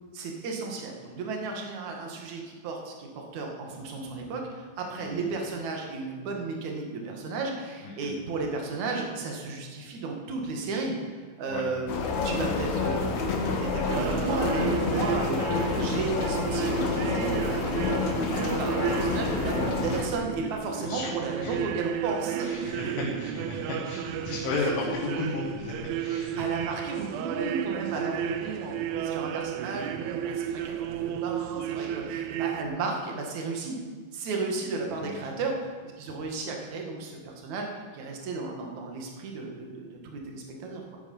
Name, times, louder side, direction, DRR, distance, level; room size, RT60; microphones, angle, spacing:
voice 1, 0.1-11.9 12.2-13.1 13.4-22.8 26.4-33.8 34.1-41.0, right 3 dB, 55° right, 1 dB, 2.4 m, -34 dB
sound 1, 11.9-20.0, left 4 dB, 70° left, 1.8 m, -28 dB
sound 2, 13.9-32.6, right 10 dB, 85° right, 3.0 m, -33 dB
voice 2, 20.8-21.1 21.4-21.6 22.4-26.7 35.0-35.1, left 3 dB, 85° left, -5 dB, 4.3 m, -34 dB
15.5 x 9.8 x 5.5 m, 1.5 s
omnidirectional pair, 5.4 m